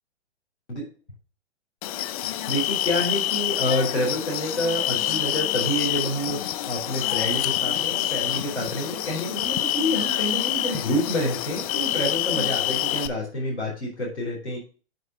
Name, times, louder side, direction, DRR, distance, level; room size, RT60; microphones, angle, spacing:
sound 1, 1.8-13.1, left 13 dB, 35° left, 0.5 m, -27 dB
voice 1, 2.5-14.6, equal, 90° left, -4 dB, 3.1 m, -28 dB
7.8 x 5.9 x 3.7 m, 0.36 s
figure-of-eight pair, 115°, 33 cm